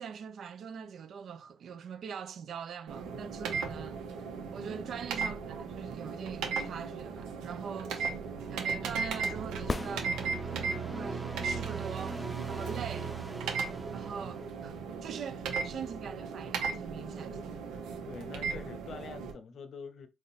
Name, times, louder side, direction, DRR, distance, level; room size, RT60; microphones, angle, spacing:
voice 1, 0.0-4.0 4.5-8.1 8.5-10.1 10.4-12.2 12.5-13.2 13.9-14.7 15.0-17.4, right 7 dB, 60° right, 0.5 m, -42 dB
sound 1, 2.9-19.3, right 5 dB, 90° right, 1.0 m, -37 dB
sound 2, 7.7-15.0, right 5 dB, 15° right, 0.7 m, -40 dB
sound 3, 9.7-10.8 14.7-14.8, left 2 dB, 20° left, 0.3 m, -37 dB
voice 2, 18.1-20.1, left 5 dB, 55° left, 0.7 m, -46 dB
3.6 x 2.4 x 4.1 m
cardioid pair, 90°, 0 cm